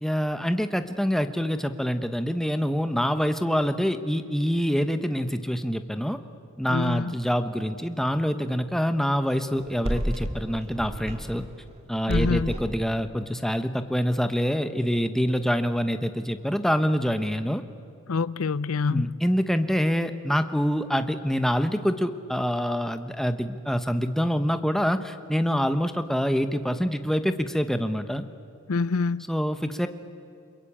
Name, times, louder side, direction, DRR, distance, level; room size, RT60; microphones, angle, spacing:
voice 1, 0.0-6.2 6.6-11.4 11.9-17.6 18.9-28.2 29.3-29.9, equal, ahead, 1.0 m, -26 dB
voice 2, 6.7-7.1 12.1-12.5 18.1-19.2 28.7-29.2, left 4 dB, 70° left, 0.6 m, -26 dB
sound 1, 9.6-11.8 12.1-12.8, equal, 25° right, 2.0 m, -31 dB
29.5 x 22.0 x 8.8 m
head